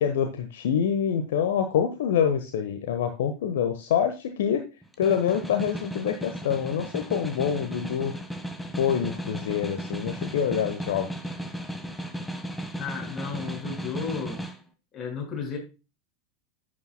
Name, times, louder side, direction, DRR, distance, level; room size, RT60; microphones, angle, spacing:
voice 1, 0.0-4.6 5.0-8.1 8.8-11.1, left 8 dB, 60° left, 1.0 m, -26 dB
Snare drum, 4.8-14.6, equal, 5° left, 1.4 m, -35 dB
voice 2, 12.8-14.4 14.9-15.6, left 6 dB, 30° left, 5.1 m, -33 dB
11.0 x 8.7 x 2.2 m
figure-of-eight pair, 85°, 0 cm